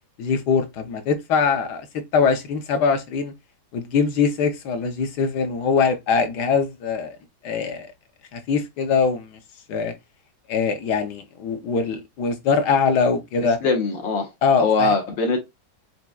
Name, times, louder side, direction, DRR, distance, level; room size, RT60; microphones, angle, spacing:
voice 1, 0.2-3.3 3.7-7.2 7.4-7.9 8.3-9.4 9.7-9.9 10.5-13.6 14.4-14.9, left 5 dB, 65° left, 1.3 m, -22 dB
voice 2, 13.6-14.3 14.6-15.4, left 4 dB, 80° left, 2.0 m, -21 dB
7.0 x 2.9 x 2.3 m
omnidirectional pair, 2.0 m